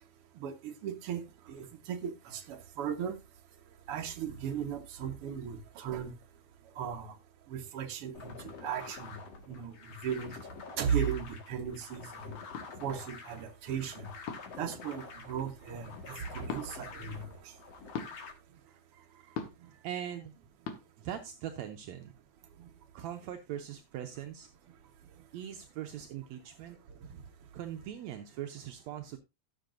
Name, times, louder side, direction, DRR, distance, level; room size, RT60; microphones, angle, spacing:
voice 1, 0.4-1.2 1.5-3.1 3.9-6.1 6.8-7.1 7.5-8.3 8.6-9.2 9.5-9.7 10.0-10.4 10.8-12.3 12.8-14.1 14.6-17.3, right 8 dB, 55° right, 5 dB, 2.0 m, -36 dB
sound 1, 8.1-18.3, left 5 dB, 60° left, 2.8 m, -47 dB
sound 2, 12.5-12.7 14.3-14.6 16.5-16.7 17.9-18.1 19.4-19.7 20.7-20.8, left 6 dB, 75° left, 2.6 m, -38 dB
voice 2, 18.7-20.3 21.0-22.2 22.9-24.5 25.3-26.8 27.5-29.2, right 10 dB, 75° right, 5 dB, 2.0 m, -41 dB
16.5 x 6.7 x 2.6 m, 0.23 s
omnidirectional pair, 3.3 m